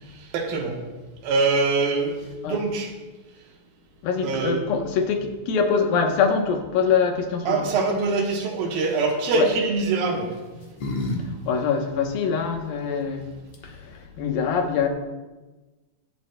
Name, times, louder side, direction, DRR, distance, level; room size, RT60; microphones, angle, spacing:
voice 1, 0.3-0.8 1.2-2.9 4.2-4.6 7.5-10.3, right 3 dB, 90° right, 0 dB, 3.1 m, -23 dB
voice 2, 4.0-7.7 9.3-9.5 11.4-13.3 13.8-14.9, left 6 dB, 85° left, 3 dB, 2.9 m, -24 dB
sound 1, 8.7-9.1 10.1-11.2 11.5-11.6 13.2-13.3 13.5-14.0, left 2 dB, 55° left, 1.7 m, -31 dB
23.5 x 8.3 x 2.3 m, 1.2 s
omnidirectional pair, 4.0 m